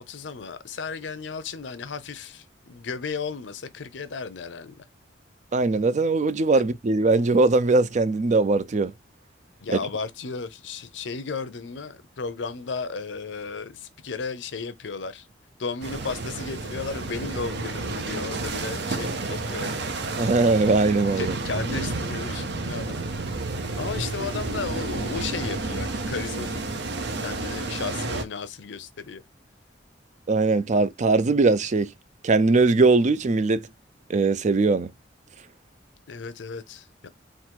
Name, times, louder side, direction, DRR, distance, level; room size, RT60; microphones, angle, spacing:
voice 1, 0.1-4.8 6.5-6.6 9.6-15.3 15.6-19.9 21.2-23.0 23.8-26.6 27.2-29.2 36.1-37.1, left 5 dB, 75° left, 0.6 m, -34 dB
voice 2, 5.5-8.9 9.7-9.8 20.2-21.3 30.3-31.9 32.2-33.6 34.1-34.9, right 3 dB, 40° right, 0.4 m, -20 dB
sound 1, 15.8-28.2, right 3 dB, 65° right, 0.8 m, -31 dB
3.8 x 2.4 x 4.4 m
head